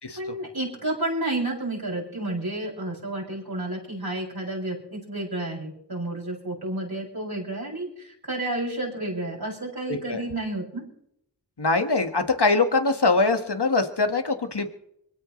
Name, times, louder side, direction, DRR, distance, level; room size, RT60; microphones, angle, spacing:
voice 1, 0.1-10.8, right 2 dB, 60° right, -3 dB, 7.1 m, -31 dB
voice 2, 9.9-10.2 11.6-14.7, left 3 dB, 70° left, 6 dB, 1.9 m, -23 dB
24.5 x 16.5 x 3.3 m, 0.74 s
wide cardioid pair, 45°, 42 cm